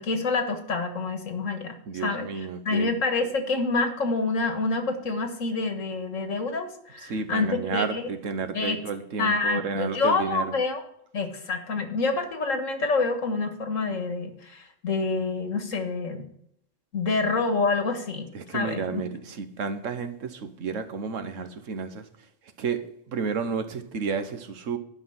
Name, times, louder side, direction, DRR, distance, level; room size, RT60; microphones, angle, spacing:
voice 1, 0.0-8.1 8.5-8.8 9.2-10.8 11.1-16.2 16.9-19.1, left 3 dB, 90° left, 6 dB, 2.0 m, -27 dB
voice 2, 1.9-3.0 7.0-10.5 18.3-22.0 22.6-22.8 23.1-24.8, right 5 dB, 80° right, 9 dB, 1.4 m, -31 dB
10.5 x 5.9 x 7.1 m, 0.72 s
omnidirectional pair, 1.3 m